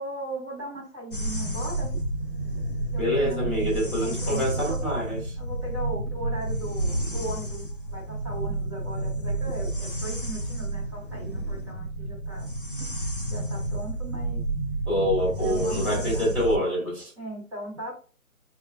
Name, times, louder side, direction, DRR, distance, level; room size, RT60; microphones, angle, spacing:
voice 1, 0.0-1.9 2.9-4.8 5.4-12.5 12.8-12.9 13.3-14.4 15.2-16.3 17.2-17.9, right 1 dB, 20° right, 1.0 m, -38 dB
sound 1, 1.1-16.6, right 1 dB, 40° left, 0.4 m, -30 dB
voice 2, 3.0-5.4 14.9-17.1, equal, 5° left, 1.0 m, -26 dB
5.0 x 2.2 x 2.6 m
figure-of-eight pair, 155°, 43 cm